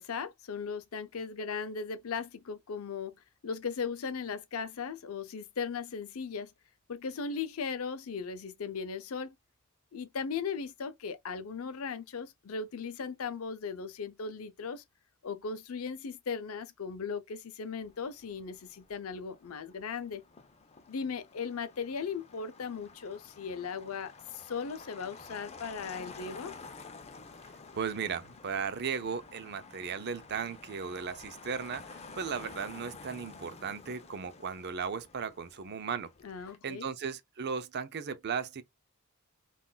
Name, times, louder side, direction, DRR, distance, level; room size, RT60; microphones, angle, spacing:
voice 1, 0.0-3.1 3.4-6.5 6.9-9.3 9.9-14.8 15.2-20.2 20.9-26.5 36.2-36.9, left 5 dB, 85° left, 0.5 m, -37 dB
Motor vehicle (road), 17.8-36.6, left 4 dB, 30° left, 0.5 m, -51 dB
voice 2, 27.7-36.1 36.6-38.6, right 6 dB, 55° right, 0.5 m, -36 dB
3.8 x 2.5 x 2.3 m
head